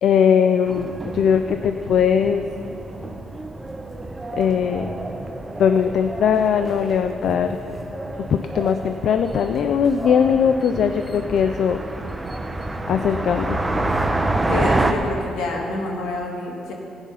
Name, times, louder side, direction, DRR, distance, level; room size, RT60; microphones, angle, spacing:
voice 1, 0.0-2.5 4.3-4.9 5.6-7.6 8.3-11.8 12.9-13.6, left 7 dB, 70° left, 8 dB, 0.5 m, -20 dB
sound 1, 0.7-14.9, right 2 dB, 15° right, 1.0 m, -28 dB
voice 2, 14.5-16.7, left 2 dB, 85° left, 0 dB, 2.0 m, -27 dB
15.0 x 9.9 x 5.7 m, 2.8 s
cardioid pair, 90°, 0 cm